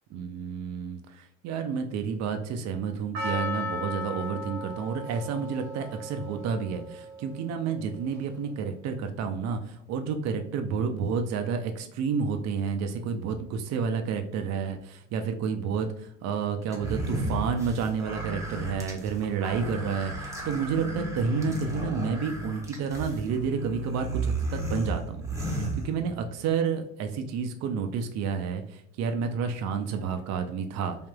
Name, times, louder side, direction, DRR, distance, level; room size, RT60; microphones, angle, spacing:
voice 1, 0.1-31.0, right 6 dB, 45° right, 6 dB, 0.5 m, -30 dB
Percussion, 3.1-7.5 8.1-8.2, left 1 dB, 75° right, 1.0 m, -36 dB
sound 1, 16.7-26.4, right 1 dB, 10° right, 0.8 m, -34 dB
3.3 x 2.4 x 2.2 m, 0.72 s
hypercardioid pair, 60°, 39 cm